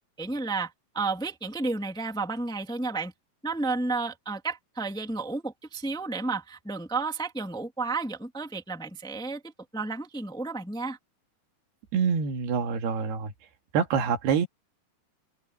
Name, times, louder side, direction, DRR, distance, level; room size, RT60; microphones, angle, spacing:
voice 1, 0.2-3.1 3.4-11.0, right 3 dB, ahead, 1.7 m, -32 dB
voice 2, 11.9-13.3 13.7-14.5, right 6 dB, 80° right, 4.1 m, -26 dB
omnidirectional pair, 4.6 m